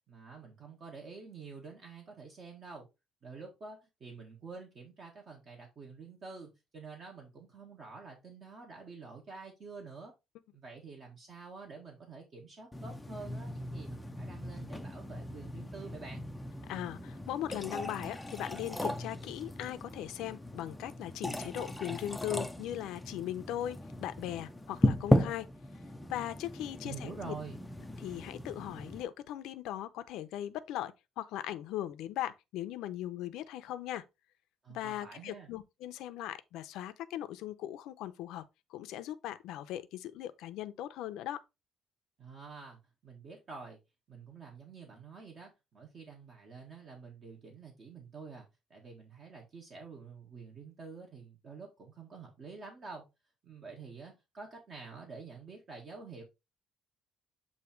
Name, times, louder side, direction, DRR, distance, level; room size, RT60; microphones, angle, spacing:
voice 1, 0.1-2.9 3.2-10.1 10.5-16.2 26.8-27.6 34.6-35.5 42.2-43.8 44.1-53.0 53.4-56.2, right 4 dB, 40° right, 1.6 m, -48 dB
sound 1, 12.7-29.0, left 1 dB, 5° left, 0.5 m, -36 dB
voice 2, 16.7-25.5 26.1-27.3 28.0-34.0 34.7-38.4 38.7-41.4, left 12 dB, 85° left, 0.7 m, -39 dB
8.2 x 2.9 x 4.5 m
cardioid pair, 150°, 0 cm